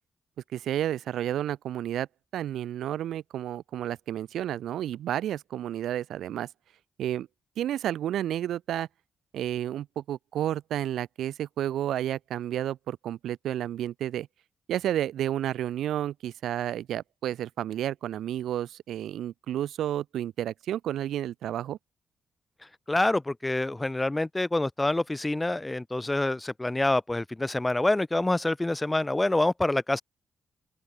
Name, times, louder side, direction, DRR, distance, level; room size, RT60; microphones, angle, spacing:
voice 1, 0.5-2.1 2.3-6.5 7.0-7.3 7.6-8.9 9.3-14.3 14.7-21.8, right 11 dB, 85° right, 1.7 m, -31 dB
voice 2, 22.9-30.0, left 2 dB, 15° left, 0.3 m, -26 dB
open air
cardioid pair, 65°, 0 cm